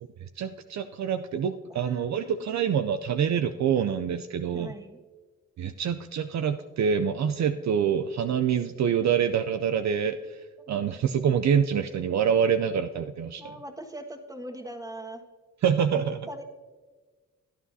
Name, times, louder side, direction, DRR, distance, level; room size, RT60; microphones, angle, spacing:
voice 1, 0.4-4.7 5.6-10.4 10.7-13.5 15.6-16.3, right 7 dB, 60° right, 9 dB, 0.5 m, -26 dB
voice 2, 1.7-2.5 4.5-5.0 10.6-10.7 13.4-15.2 15.9-16.4, right 1 dB, 10° right, 4 dB, 1.6 m, -41 dB
17.0 x 10.0 x 2.7 m, 1.4 s
supercardioid pair, 50°, 31 cm